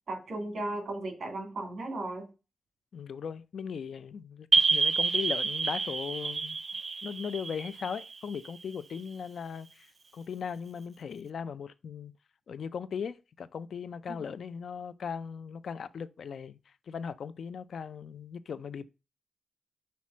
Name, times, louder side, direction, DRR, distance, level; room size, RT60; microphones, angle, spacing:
voice 1, 0.1-2.3 14.1-14.2, right 2 dB, 55° right, 2.8 m, -36 dB
voice 2, 2.9-6.6 7.0-9.9 10.1-12.1 12.5-16.6 16.9-18.8, left 6 dB, 65° left, 0.5 m, -38 dB
sound 1, 4.5-9.0, right 4 dB, 35° right, 0.5 m, -28 dB
5.7 x 4.2 x 6.1 m
wide cardioid pair, 130°, 0 cm